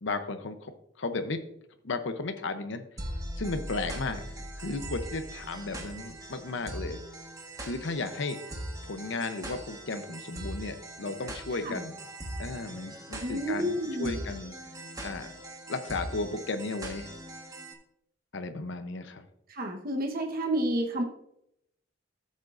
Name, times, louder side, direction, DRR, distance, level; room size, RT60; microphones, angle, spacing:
voice 1, 0.0-0.7 1.0-1.4 1.8-2.8 3.4-4.2 4.6-7.0 7.6-8.6 8.8-12.0 12.4-14.5 15.0-15.3 15.7-17.1 18.3-19.3, left 3 dB, 70° left, 8 dB, 0.7 m, -34 dB
sound 1, 3.0-17.7, right 1 dB, 20° right, 1.4 m, -41 dB
voice 2, 13.2-14.4 19.5-21.0, right 1 dB, 50° right, 2 dB, 1.1 m, -30 dB
13.5 x 7.3 x 2.5 m, 0.77 s
head